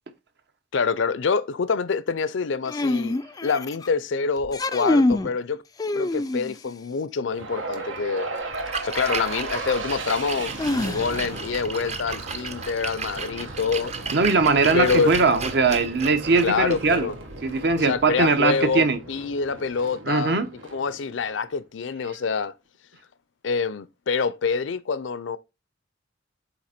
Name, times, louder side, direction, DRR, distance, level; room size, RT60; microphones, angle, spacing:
voice 1, 0.7-5.6 5.9-8.4 8.8-10.5 10.9-13.9 14.7-15.1 16.4-17.2 17.8-20.4 20.7-22.5 23.4-25.4, left 5 dB, 75° left, 0.5 m, -26 dB
sound 1, 2.7-3.9 4.4-5.3 5.8-6.7 8.7-8.8 10.6-11.4, left 2 dB, 20° left, 0.3 m, -25 dB
sound 2, 7.3-21.5, right 2 dB, 90° right, 1.3 m, -36 dB
Splash splatter, 8.4-18.3, right 5 dB, 35° right, 0.7 m, -35 dB
voice 2, 14.1-17.1 17.4-19.0 20.1-20.5, right 4 dB, 60° right, 0.9 m, -20 dB
8.0 x 3.4 x 4.3 m
head